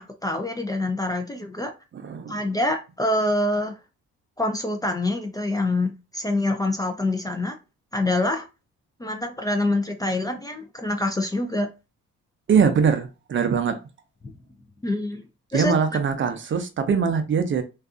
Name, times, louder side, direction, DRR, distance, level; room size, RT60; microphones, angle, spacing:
voice 1, 0.0-1.7 2.3-3.8 4.4-7.6 7.9-8.5 9.0-11.7 14.8-15.2 15.5-15.7, left 2 dB, 15° left, 0.4 m, -25 dB
voice 2, 1.9-2.4 12.5-13.8 15.5-17.6, right 6 dB, 40° right, 0.5 m, -22 dB
2.6 x 2.3 x 2.4 m
cardioid pair, 90°, 30 cm